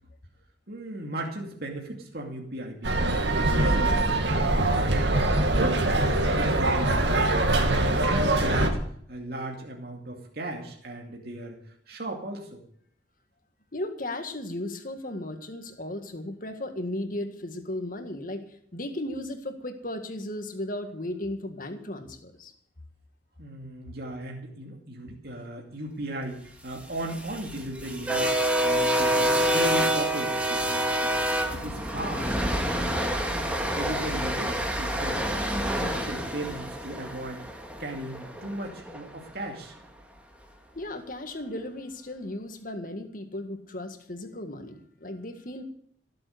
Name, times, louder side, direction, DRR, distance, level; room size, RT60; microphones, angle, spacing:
voice 1, 0.7-5.9 6.4-8.8 9.1-11.6 11.9-12.6 23.4-31.1 31.5-33.0 33.7-35.3 35.6-37.4 37.8-39.8, right 1 dB, 60° right, 0 dB, 2.5 m, -37 dB
sound 1, 2.8-8.7, right 2 dB, 75° right, 2.3 m, -23 dB
voice 2, 13.7-22.5 40.8-45.6, left 1 dB, 50° left, 6 dB, 1.9 m, -35 dB
sound 2, 26.8-39.0, equal, 10° right, 2.0 m, -27 dB
16.5 x 7.9 x 8.0 m, 0.64 s
head